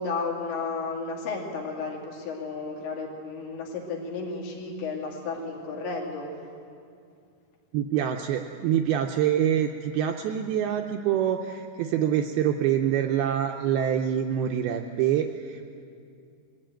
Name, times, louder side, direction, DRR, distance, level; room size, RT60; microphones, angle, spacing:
voice 1, 0.0-6.3, left 4 dB, 80° left, -1 dB, 4.9 m, -33 dB
voice 2, 7.7-15.7, right 9 dB, 85° right, 4 dB, 2.2 m, -26 dB
21.5 x 15.5 x 9.1 m, 2.4 s
omnidirectional pair, 5.2 m